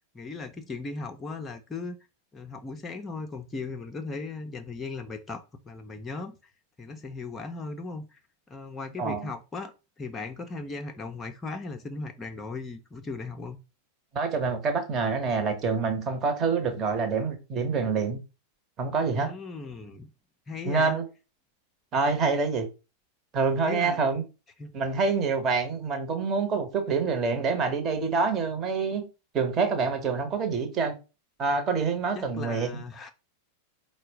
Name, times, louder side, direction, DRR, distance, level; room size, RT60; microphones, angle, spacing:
voice 1, 0.1-2.0 2.3-6.5 6.8-8.2 8.5-13.6 19.1-20.1 20.5-21.0 23.6-24.0 24.6-24.7 32.2-33.1, left 3 dB, 15° left, 0.5 m, -37 dB
voice 2, 9.0-9.3 14.1-18.2 18.8-19.3 20.6-21.0 21.9-22.7 23.3-24.2 24.7-29.0 29.3-30.9 31.4-32.8, right 4 dB, 30° right, 1.0 m, -26 dB
4.6 x 2.1 x 4.6 m
figure-of-eight pair, 90°, 0 cm